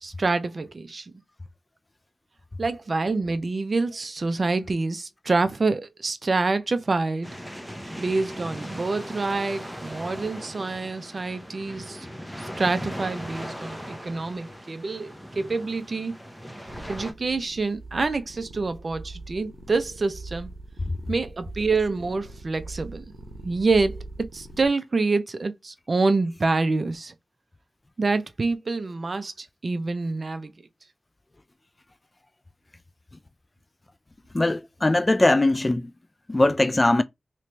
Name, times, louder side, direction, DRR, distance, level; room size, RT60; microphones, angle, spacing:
voice 1, 0.0-1.1 2.6-7.3 8.0-12.1 12.6-16.2 16.9-20.5 21.1-23.1 23.4-27.1 28.0-30.5, right 3 dB, 45° right, 0.5 m, -26 dB
sound 1, 7.2-17.1, equal, ahead, 0.7 m, -38 dB
sound 2, 16.7-24.7, right 2 dB, 80° right, 0.8 m, -42 dB
voice 2, 34.3-35.9 36.3-37.0, left 2 dB, 25° left, 0.3 m, -20 dB
3.0 x 2.8 x 3.3 m
wide cardioid pair, 80°, 0 cm